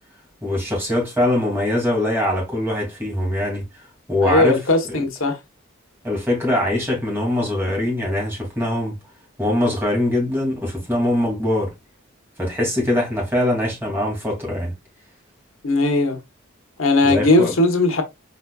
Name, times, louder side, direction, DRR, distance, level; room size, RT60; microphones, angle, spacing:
voice 1, 0.4-3.7 4.1-4.6 4.9-5.0 6.0-9.0 9.4-11.7 12.4-14.7 17.0-17.5, left 1 dB, 10° right, 2.4 m, -22 dB
voice 2, 4.2-5.4 15.6-16.2 16.8-18.0, left 2 dB, 85° left, 1.2 m, -18 dB
4.6 x 4.2 x 2.3 m
head